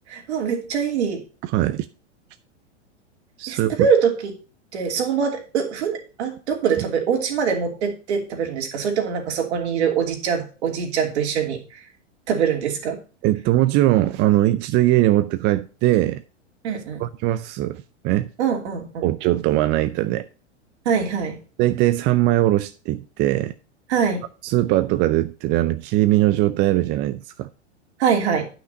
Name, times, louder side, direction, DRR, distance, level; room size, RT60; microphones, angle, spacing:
voice 1, 0.1-1.2 3.5-4.3 4.7-11.8 12.3-13.0 16.6-17.0 18.4-19.1 20.8-21.4 23.9-24.2 28.0-28.5, right 6 dB, 65° right, 3.0 m, -23 dB
voice 2, 1.4-1.9 3.4-3.9 13.2-16.2 17.0-18.3 19.0-20.3 21.6-23.5 24.4-27.5, right 15 dB, 30° right, 0.5 m, -20 dB
9.6 x 6.0 x 5.3 m
hypercardioid pair, 105°, 35 cm